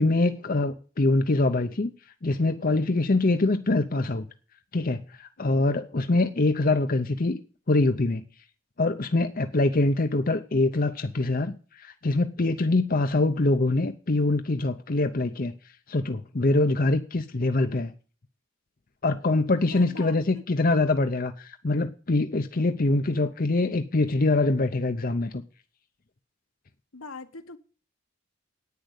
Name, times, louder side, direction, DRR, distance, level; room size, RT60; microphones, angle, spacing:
voice 1, 0.0-1.9 2.2-4.3 4.7-7.4 7.7-8.3 8.8-15.5 15.9-17.9 19.0-25.4, left 2 dB, 40° left, 0.7 m, -24 dB
voice 2, 19.7-20.2 26.9-27.6, left 3 dB, 75° left, 1.3 m, -42 dB
10.5 x 9.5 x 8.1 m
head